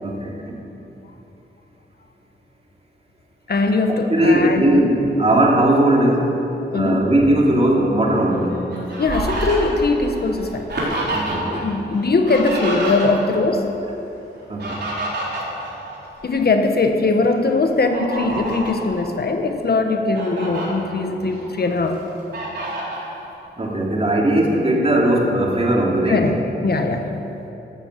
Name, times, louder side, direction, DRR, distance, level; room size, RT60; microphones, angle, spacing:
voice 1, 0.0-0.6 3.9-6.4 6.7-8.6 10.9-11.7 14.5-14.8 23.6-26.3, right 1 dB, 30° right, -1 dB, 2.7 m, -18 dB
voice 2, 3.5-4.6 6.7-7.0 8.8-10.7 11.5-13.6 15.4-15.6 16.2-22.4 26.1-26.4 26.6-27.1, left 3 dB, 55° left, 5 dB, 1.2 m, -20 dB
Fowl, 8.3-11.6 11.9-13.4 14.3-16.4 16.9-17.1 17.7-18.8 19.4-19.5 19.9-20.7 21.2-21.9 22.3-23.0, right 1 dB, 60° right, 4.4 m, -28 dB
13.0 x 12.5 x 8.0 m, 3.0 s
wide cardioid pair, 100°, 20 cm